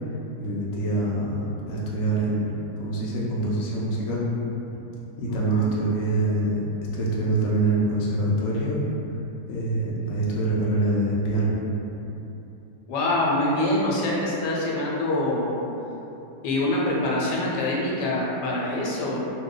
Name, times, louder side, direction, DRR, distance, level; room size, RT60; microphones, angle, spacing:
voice 1, 0.4-4.2 5.2-6.6 6.9-8.8 9.5-11.5, right 2 dB, 65° left, -5 dB, 0.7 m, -25 dB
voice 2, 12.9-15.6 16.4-19.2, left 1 dB, 85° left, -4 dB, 1.3 m, -25 dB
2.9 x 2.2 x 3.7 m, 2.9 s
omnidirectional pair, 1.8 m